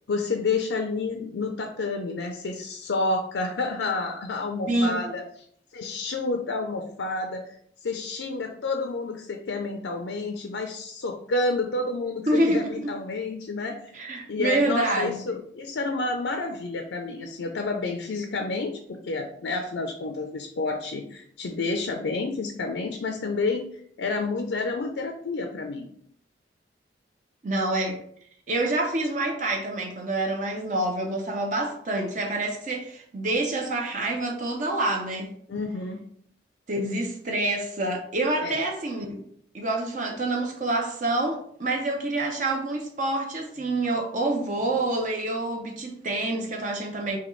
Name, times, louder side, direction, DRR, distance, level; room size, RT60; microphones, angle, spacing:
voice 1, 0.1-5.2 5.7-7.4 7.8-13.8 14.3-25.9 35.5-36.0 38.4-38.6, left 3 dB, 85° left, 4 dB, 0.5 m, -29 dB
voice 2, 4.7-5.2 12.3-12.9 13.9-15.2 27.4-28.0 28.5-35.3 36.7-39.2 39.5-47.2, right 2 dB, 45° right, 1 dB, 0.6 m, -27 dB
5.7 x 2.3 x 3.1 m, 0.65 s
head